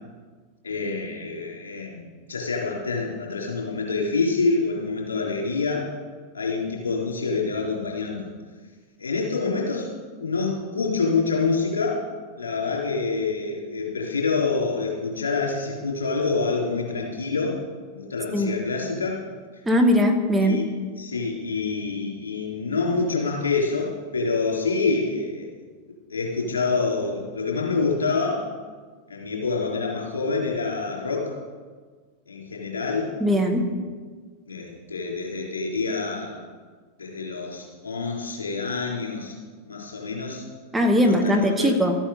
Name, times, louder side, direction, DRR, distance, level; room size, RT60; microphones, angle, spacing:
voice 1, 0.6-5.9 6.3-8.3 9.0-9.9 10.2-12.1 12.4-17.6 17.9-19.2 20.4-25.7 26.1-28.5 29.1-31.4 32.3-33.8 34.5-36.4 37.0-39.3 39.6-40.5 41.1-41.7, left 4 dB, 70° left, -2 dB, 3.9 m, -27 dB
voice 2, 19.7-20.6 33.2-33.7 40.7-42.0, equal, 10° right, 4 dB, 1.3 m, -20 dB
13.5 x 8.9 x 6.8 m, 1.5 s
figure-of-eight pair, 90°, 0 cm